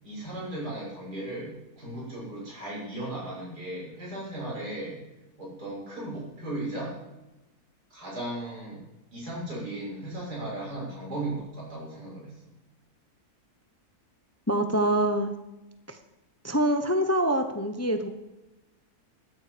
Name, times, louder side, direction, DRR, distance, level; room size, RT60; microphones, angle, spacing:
voice 1, 0.0-5.0 5.4-7.0 7.9-8.8 9.1-12.4, right 1 dB, 90° right, -5 dB, 7.4 m, -36 dB
voice 2, 14.5-15.3 15.9-16.0 16.4-18.1, right 1 dB, 15° left, 7 dB, 0.8 m, -25 dB
13.5 x 13.0 x 5.2 m, 0.99 s
omnidirectional pair, 1.6 m